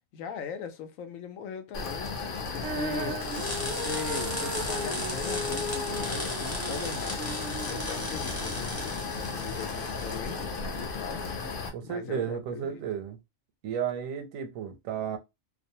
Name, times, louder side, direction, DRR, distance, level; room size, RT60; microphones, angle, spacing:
voice 1, 0.1-2.1 2.5-3.2 3.5-7.3 7.6-10.4 10.7-11.3 11.8-12.8, left 6 dB, 85° left, 1.0 m, -40 dB
sound 1, 1.7-11.7, left 4 dB, 55° left, 0.7 m, -35 dB
Female singing, 2.6-8.8, right 1 dB, 65° right, 0.7 m, -37 dB
sound 2, 3.2-10.4, left 1 dB, 15° left, 0.6 m, -37 dB
voice 2, 11.7-13.2 13.6-15.2, right 8 dB, 85° right, 1.0 m, -33 dB
2.5 x 2.1 x 2.7 m
omnidirectional pair, 1.4 m